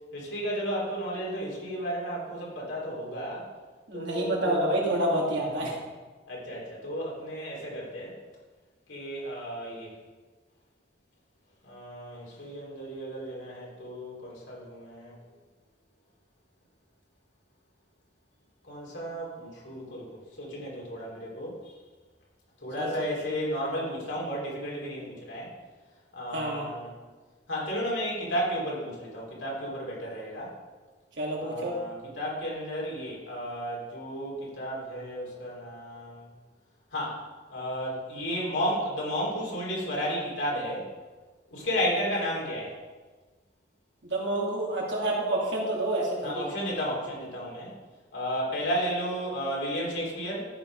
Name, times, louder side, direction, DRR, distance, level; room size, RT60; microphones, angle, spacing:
voice 1, 0.1-3.5 3.9-4.7 6.3-8.1 8.9-9.9 11.6-15.1 18.7-21.6 22.6-25.5 26.1-26.9 27.5-30.5 31.4-36.3 36.9-37.2 37.5-40.9 41.5-42.7 46.2-47.7 48.1-50.5, equal, 90° left, -4 dB, 3.7 m, -33 dB
voice 2, 3.9-5.7 22.8-22.9 23.6-23.8 26.3-26.6 31.2-31.8 44.0-46.5, right 1 dB, 80° right, -3 dB, 2.9 m, -28 dB
13.5 x 5.5 x 4.9 m, 1.3 s
head